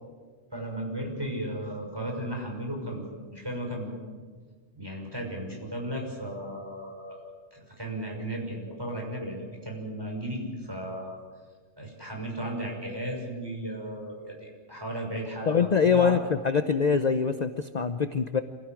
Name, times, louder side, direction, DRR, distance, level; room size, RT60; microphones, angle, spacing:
voice 1, 0.5-3.9 4.7-7.2 7.5-11.2 11.8-16.1, right 1 dB, 20° right, 0 dB, 6.2 m, -35 dB
voice 2, 15.5-18.4, left 6 dB, 40° left, 9 dB, 0.9 m, -24 dB
26.5 x 16.5 x 9.1 m, 1.5 s
omnidirectional pair, 1.2 m